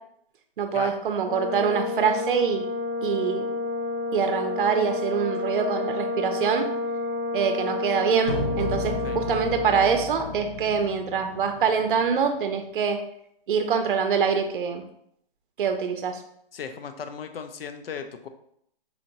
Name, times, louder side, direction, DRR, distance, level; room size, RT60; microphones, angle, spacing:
voice 1, 0.6-2.6 3.0-3.5 4.1-6.7 7.3-13.0 13.5-14.8 15.6-16.2, right 6 dB, 60° right, 7 dB, 0.5 m, -25 dB
Brass instrument, 1.3-10.1, left 3 dB, 55° left, 1.4 m, -30 dB
sound 1, 8.3-12.3, left 2 dB, 30° left, 0.5 m, -34 dB
voice 2, 16.5-18.3, left 6 dB, 75° left, 8 dB, 0.5 m, -36 dB
4.2 x 2.8 x 2.6 m, 0.71 s
hypercardioid pair, 165°, 30 cm